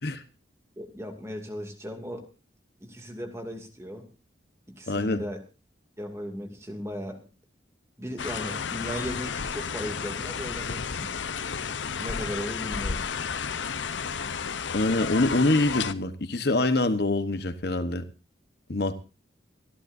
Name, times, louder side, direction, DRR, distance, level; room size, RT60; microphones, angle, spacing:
voice 1, 0.8-2.3 2.8-4.1 4.7-5.4 6.0-7.2 8.0-11.1 12.0-13.1, equal, 15° right, 2.4 m, -37 dB
voice 2, 4.9-5.2 14.7-18.0 18.7-19.0, left 2 dB, 60° left, 1.1 m, -25 dB
sound 1, 8.2-15.9, left 6 dB, 90° left, 0.8 m, -32 dB
24.0 x 13.5 x 2.7 m
head